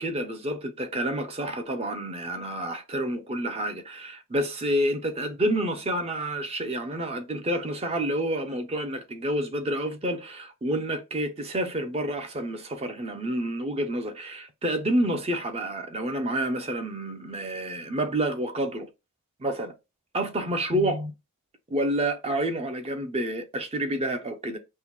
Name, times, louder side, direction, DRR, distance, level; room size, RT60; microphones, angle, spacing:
voice 1, 0.0-18.9 19.4-19.7 20.1-21.1 21.7-24.6, right 1 dB, 30° right, 0.5 m, -29 dB
5.3 x 2.1 x 3.0 m
head